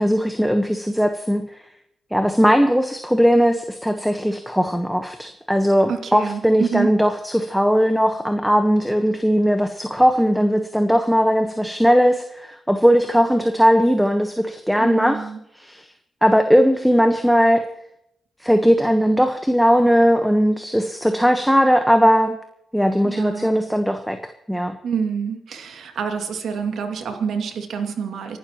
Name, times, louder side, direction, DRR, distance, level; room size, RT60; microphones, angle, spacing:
voice 1, 0.0-1.5 2.1-15.3 15.5-15.8 16.2-17.6 18.4-22.4 22.7-24.2 24.5-24.8, equal, ahead, 6 dB, 1.2 m, -18 dB
voice 2, 5.9-6.9 14.8-15.4 23.0-23.5 24.8-28.4, right 6 dB, 75° right, 4 dB, 2.4 m, -27 dB
29.5 x 12.0 x 3.1 m, 0.78 s
cardioid pair, 80°, 0 cm